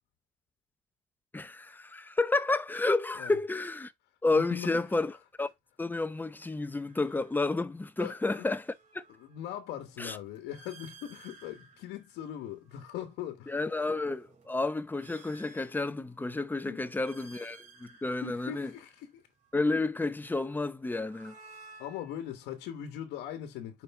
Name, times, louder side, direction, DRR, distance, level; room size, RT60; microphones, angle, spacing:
voice 1, 1.3-3.9 4.2-5.1 5.4-5.5 5.8-8.7 8.9-9.0 10.0-10.2 13.5-18.7 19.5-21.3, left 3 dB, 10° left, 0.6 m, -31 dB
voice 2, 4.3-4.8 8.0-8.5 9.1-13.6 16.6-16.9 18.2-19.2 21.8-23.8, left 10 dB, 90° left, 1.2 m, -40 dB
sound 1, 4.7-5.0 6.7-7.9 8.3-13.1 13.6-16.3 16.7-19.7 20.7-23.0, right 3 dB, 50° right, 2.8 m, -57 dB
5.7 x 5.2 x 4.3 m
cardioid pair, 110°, 17 cm